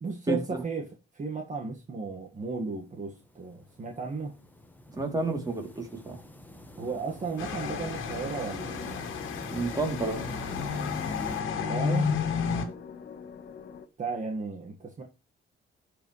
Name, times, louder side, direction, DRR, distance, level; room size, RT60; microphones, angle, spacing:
voice 1, 0.0-4.3 6.8-9.1 11.5-12.2 14.0-15.0, right 4 dB, 40° right, 1.8 m, -34 dB
sound 1, 2.6-11.4, left 1 dB, 10° left, 1.4 m, -45 dB
voice 2, 4.9-6.2 9.5-10.3 12.3-12.7, right 2 dB, 20° right, 3.0 m, -31 dB
sound 2, 7.4-12.6, left 6 dB, 85° left, 1.9 m, -32 dB
sound 3, 8.6-13.9, left 6 dB, 55° left, 1.4 m, -44 dB
15.0 x 5.1 x 3.2 m
cardioid pair, 90°, 20 cm